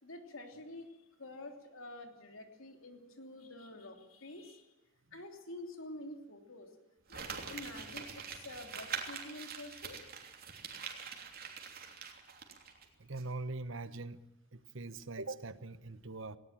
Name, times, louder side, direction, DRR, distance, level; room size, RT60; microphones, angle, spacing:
voice 1, 0.0-4.7 5.1-6.7 7.1-10.0, left 1 dB, 75° left, 5 dB, 3.2 m, -48 dB
Crumpling crinkling, 7.1-12.8 13.2-13.3, right 6 dB, 45° right, 3.3 m, -44 dB
voice 2, 13.0-14.2 14.5-16.4, right 3 dB, 65° right, 14 dB, 1.1 m, -42 dB
19.0 x 18.0 x 9.0 m, 1.0 s
head